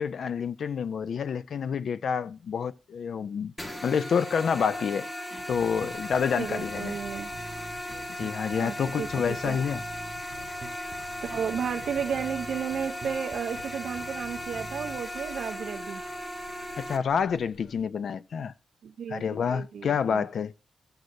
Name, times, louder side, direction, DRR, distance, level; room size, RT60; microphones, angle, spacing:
voice 1, 0.0-3.5 3.8-5.1 5.5-7.0 8.1-9.8 16.8-18.5 19.1-20.5, left 6 dB, 60° left, 0.4 m, -28 dB
sound 1, 3.6-17.0, equal, 15° left, 0.9 m, -37 dB
Bass guitar, 5.4-15.0, right 3 dB, 30° right, 0.8 m, -47 dB
sound 2, 5.5-17.8, left 3 dB, 75° left, 1.0 m, -54 dB
voice 2, 6.4-7.3 8.6-9.6 11.2-16.0 18.8-19.2 19.5-20.2, right 7 dB, 70° right, 0.5 m, -33 dB
14.5 x 8.0 x 2.5 m
wide cardioid pair, 150°, 0 cm